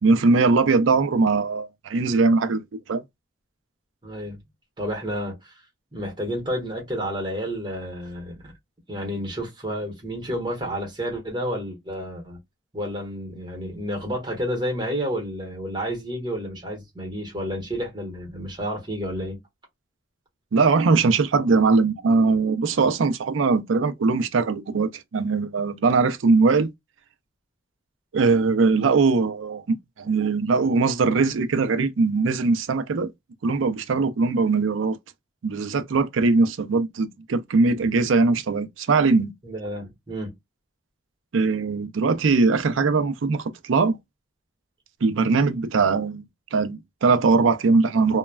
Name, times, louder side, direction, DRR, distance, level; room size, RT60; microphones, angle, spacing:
voice 1, 0.0-3.0 20.5-26.7 28.1-29.6 30.0-33.1 33.4-35.0 35.4-39.3 41.3-44.0 45.0-46.2 46.5-48.2, right 4 dB, 85° right, 0.4 m, -21 dB
voice 2, 4.0-4.4 4.8-5.6 5.9-8.5 8.9-12.4 12.7-19.4 39.4-40.3, equal, 25° right, 1.2 m, -30 dB
3.0 x 2.2 x 2.2 m
head